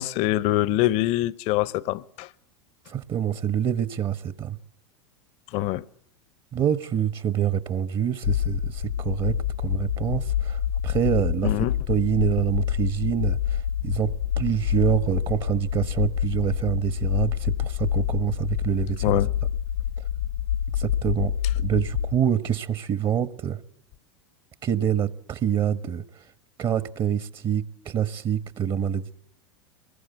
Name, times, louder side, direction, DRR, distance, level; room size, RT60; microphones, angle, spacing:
voice 1, 0.0-2.3 5.5-5.8 11.4-11.7 19.0-19.3, left 16 dB, 50° left, 0.9 m, -24 dB
voice 2, 2.9-4.6 6.5-19.2 20.8-23.6 24.6-26.0 26.6-29.1, right 9 dB, 35° right, 1.2 m, -26 dB
sound 1, 8.2-22.1, left 10 dB, 85° left, 1.1 m, -27 dB
23.5 x 21.0 x 8.1 m
hypercardioid pair, 90°, 14 cm